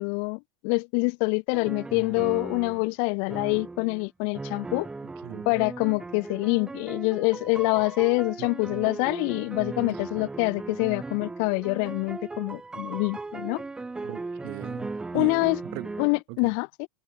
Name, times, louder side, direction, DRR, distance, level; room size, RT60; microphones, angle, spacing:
voice 1, 0.0-4.9 5.5-13.6 15.1-15.6 16.0-16.9, left 40 dB or more, 45° left, 0.7 m, -26 dB
sound 1, 1.5-2.9 3.3-4.0 4.3-16.2, right 3 dB, 5° right, 0.8 m, -37 dB
voice 2, 8.4-8.8 14.0-15.4 15.7-15.9 16.3-16.5, right 29 dB, 45° right, 2.8 m, -39 dB
supercardioid pair, 170°, 12 cm